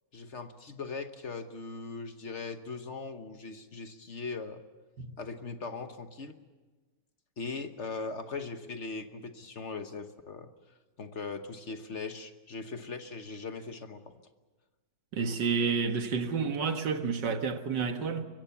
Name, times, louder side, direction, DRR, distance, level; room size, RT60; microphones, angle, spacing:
voice 1, 0.1-4.6 5.2-6.4 7.4-10.5 11.0-14.1, left 4 dB, 45° left, 1.3 m, -39 dB
voice 2, 15.1-18.3, right 5 dB, 85° right, 2.1 m, -30 dB
24.5 x 22.5 x 7.2 m
omnidirectional pair, 1.8 m